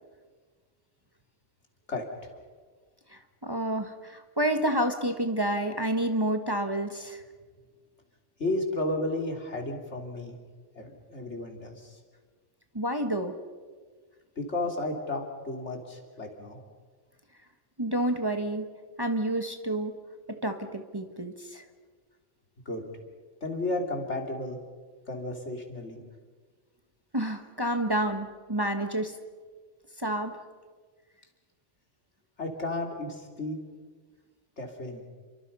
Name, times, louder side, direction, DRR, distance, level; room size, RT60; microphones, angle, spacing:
voice 1, 1.9-2.3 8.4-10.4 10.8-12.0 14.4-16.6 22.7-22.8 23.4-24.6 25.1-26.0 32.4-33.6 34.6-35.0, left 2 dB, 70° left, 2 dB, 3.6 m, -33 dB
voice 2, 3.1-7.2 12.7-13.3 17.8-18.7 19.0-19.9 20.3-21.6 27.1-29.2 30.0-30.3, right 1 dB, 20° right, 6 dB, 1.4 m, -29 dB
29.5 x 24.5 x 5.5 m, 1.5 s
omnidirectional pair, 1.2 m